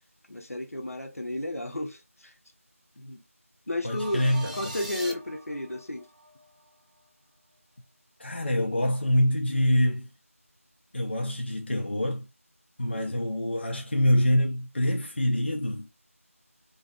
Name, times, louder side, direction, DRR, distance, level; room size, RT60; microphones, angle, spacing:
voice 1, 0.3-2.3 3.0-3.2 3.7-4.3 4.5-6.1 12.9-13.2, left 1 dB, 75° left, 0.7 m, -33 dB
voice 2, 3.8-4.7 8.2-10.1 10.9-12.3 12.8-15.9, left 1 dB, 50° left, 0.4 m, -25 dB
sound 1, 3.9-7.0, equal, ahead, 0.9 m, -46 dB
sound 2, 3.9-5.1, right 1 dB, 30° right, 0.4 m, -39 dB
2.6 x 2.3 x 2.4 m
figure-of-eight pair, 170°, 8 cm